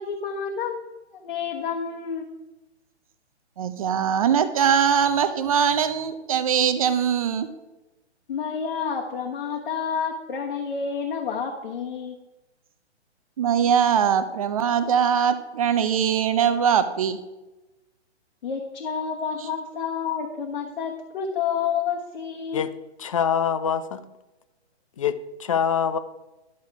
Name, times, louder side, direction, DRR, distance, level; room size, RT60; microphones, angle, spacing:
voice 1, 0.0-2.2 8.3-12.2 18.4-22.7, left 6 dB, 55° left, -1 dB, 1.3 m, -29 dB
voice 2, 3.6-7.5 13.4-17.2, right 8 dB, 30° right, 11 dB, 0.6 m, -21 dB
voice 3, 23.0-24.0 25.0-26.0, left 8 dB, 30° left, 13 dB, 0.4 m, -24 dB
11.5 x 6.3 x 4.7 m, 1.0 s
figure-of-eight pair, 135°, 34 cm